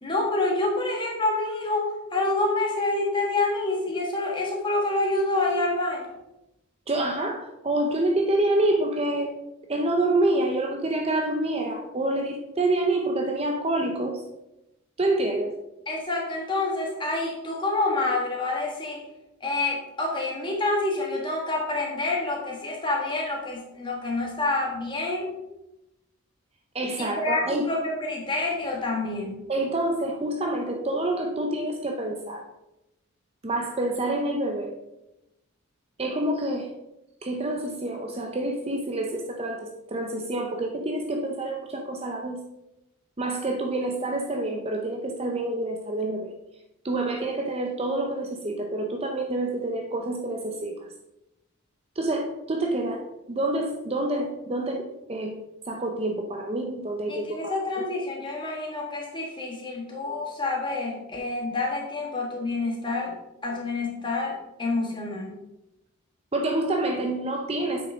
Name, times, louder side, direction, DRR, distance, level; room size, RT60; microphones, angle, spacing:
voice 1, 0.0-6.1 15.9-19.0 19.4-25.3 27.0-29.4 57.1-63.1 63.4-65.3, left 2 dB, 20° left, -1 dB, 1.7 m, -27 dB
voice 2, 6.9-9.3 9.7-14.2 15.0-15.5 26.7-27.7 29.5-32.5 33.4-34.7 36.0-36.7 37.2-42.4 43.2-46.3 46.8-50.9 52.0-55.4 55.7-57.5 66.3-67.9, right 2 dB, 25° right, 3 dB, 0.6 m, -27 dB
8.4 x 6.3 x 3.6 m, 0.92 s
head